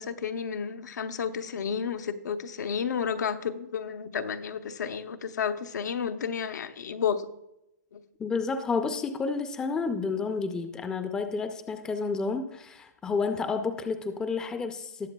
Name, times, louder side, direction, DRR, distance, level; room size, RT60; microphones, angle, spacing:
voice 1, 0.0-7.2 7.9-8.0, left 7 dB, 80° left, 7 dB, 0.9 m, -31 dB
voice 2, 8.2-15.1, left 4 dB, 10° left, 8 dB, 0.4 m, -30 dB
18.5 x 7.2 x 2.3 m, 0.86 s
hypercardioid pair, 160°, 9 cm